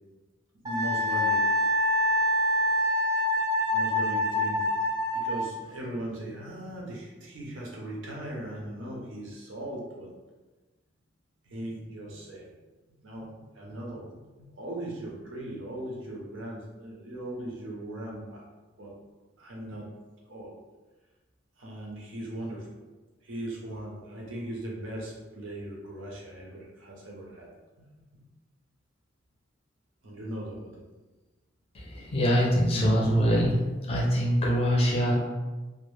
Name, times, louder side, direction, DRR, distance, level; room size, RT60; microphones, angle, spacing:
Wind instrument woodwind instrument, 0.6-5.5, left 1 dB, 20° right, 0.5 m, -25 dB
voice 1, 0.6-1.6 3.7-10.1 11.4-12.5 13.0-14.1 14.4-18.4 18.8-18.9 19.4-19.9 20.3-20.5 21.6-22.8 23.2-27.5 27.8-28.3 30.0-30.8 32.2-32.3 32.7-32.8, right 1 dB, 85° right, -2 dB, 0.6 m, -39 dB
voice 2, 31.7-33.6 33.9-35.2, equal, 30° left, -3 dB, 0.5 m, -24 dB
2.1 x 2.1 x 3.1 m, 1.2 s
head